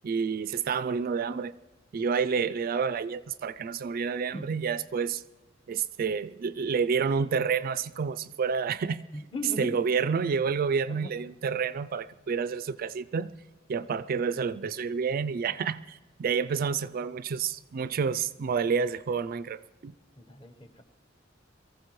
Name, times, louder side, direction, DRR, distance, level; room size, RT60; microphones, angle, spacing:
voice 1, 0.0-1.5 1.9-5.2 5.7-9.0 9.6-13.3 13.7-19.9, right 6 dB, 45° right, 0.3 m, -29 dB
voice 2, 9.1-9.8 10.9-11.1 20.2-20.8, left 1 dB, 25° left, 1.1 m, -38 dB
23.0 x 15.0 x 3.1 m
head